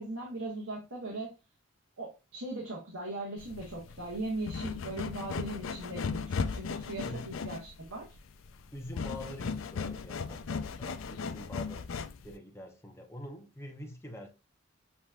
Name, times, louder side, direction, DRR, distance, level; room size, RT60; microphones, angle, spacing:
voice 1, 0.0-1.3 2.0-8.1, right 2 dB, 80° right, 1.2 m, -39 dB
sound 1, 3.4-12.3, left 5 dB, 80° left, 0.5 m, -37 dB
voice 2, 8.7-14.3, left 1 dB, 15° left, 0.8 m, -45 dB
7.0 x 3.1 x 2.3 m
head